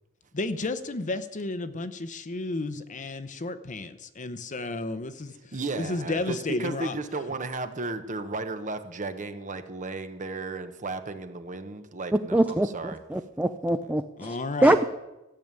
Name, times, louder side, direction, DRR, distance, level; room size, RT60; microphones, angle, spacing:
voice 1, 0.3-7.0 14.2-14.8, left 2 dB, 35° left, 12 dB, 0.8 m, -32 dB
voice 2, 5.5-13.2, right 3 dB, 35° right, 9 dB, 0.9 m, -34 dB
voice 3, 12.1-12.7 13.1-14.4 14.6-14.8, right 1 dB, 5° right, 8 dB, 0.4 m, -23 dB
14.0 x 6.9 x 9.0 m, 1.0 s
head